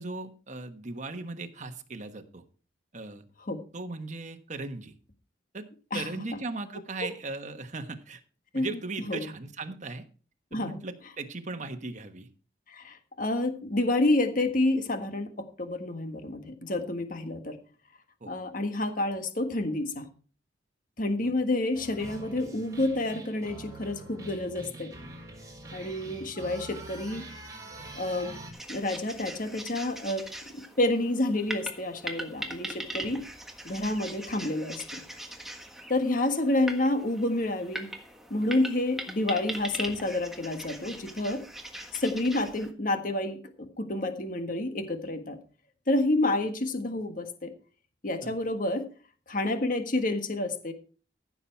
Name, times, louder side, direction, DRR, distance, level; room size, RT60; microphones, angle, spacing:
voice 1, 0.0-2.4 2.9-3.2 3.7-4.9 5.5-5.7 5.9-8.2 8.5-10.1 10.5-12.3 18.2-18.3 21.2-21.3 48.2-48.4, right 3 dB, 45° right, 7 dB, 1.3 m, -38 dB
voice 2, 12.7-17.6 18.3-20.1 21.0-24.9 25.7-27.2 27.9-28.4 28.7-30.3 30.5-33.2 33.6-35.0 35.9-37.9 38.3-41.4 41.9-45.4 45.9-47.5 48.0-48.8 49.3-50.7, left 2 dB, 50° left, 7 dB, 1.6 m, -29 dB
sound 1, 21.7-28.5, right 2 dB, 20° right, 4.2 m, -44 dB
sound 2, 28.5-42.7, right 1 dB, ahead, 1.5 m, -41 dB
14.5 x 7.2 x 4.5 m, 0.39 s
head